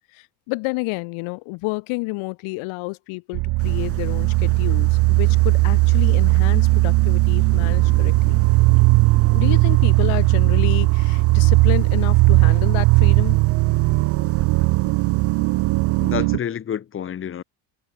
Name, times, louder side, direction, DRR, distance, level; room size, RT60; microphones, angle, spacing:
voice 1, 0.1-8.4 9.3-13.4, left 26 dB, 85° left, 2.3 m, -30 dB
sound 1, 3.3-16.4, right 24 dB, 70° right, 2.0 m, -17 dB
sound 2, 3.6-16.2, right 8 dB, 30° right, 5.6 m, -35 dB
voice 2, 16.0-17.4, left 9 dB, 25° left, 1.9 m, -29 dB
cardioid pair, 175°, 48 cm